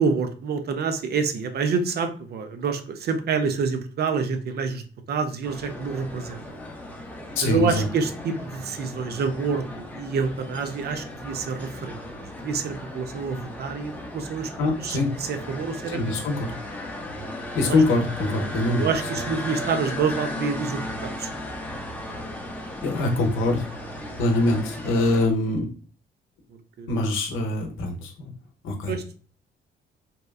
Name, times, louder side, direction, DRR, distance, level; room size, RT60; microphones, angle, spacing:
voice 1, 0.0-4.8 5.1-6.4 7.4-14.5 14.8-16.0 17.6-17.8 18.8-21.3 26.8-26.9 28.9-29.2, right 5 dB, 55° right, 8 dB, 0.5 m, -27 dB
sound 1, 5.4-25.3, left 1 dB, 10° left, 0.5 m, -36 dB
voice 2, 7.4-7.9 14.6-15.1 15.9-16.5 17.5-18.9 22.8-23.7 24.2-25.7 26.9-28.3 28.6-28.9, left 2 dB, 85° left, 4 dB, 0.7 m, -23 dB
2.8 x 2.3 x 2.3 m, 0.40 s
cardioid pair, 90°, 20 cm